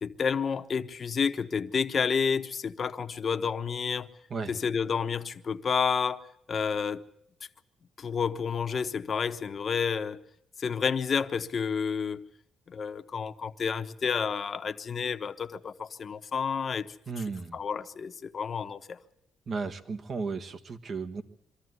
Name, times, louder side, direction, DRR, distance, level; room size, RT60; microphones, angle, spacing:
voice 1, 0.0-4.1 4.5-6.2 6.5-7.0 8.0-10.2 10.6-12.3 12.7-16.9 17.5-19.0, left 6 dB, 45° left, 1.1 m, -30 dB
voice 2, 17.1-17.6 19.5-21.2, right 4 dB, 45° right, 1.6 m, -34 dB
24.0 x 14.0 x 9.6 m
cardioid pair, 90°, 0 cm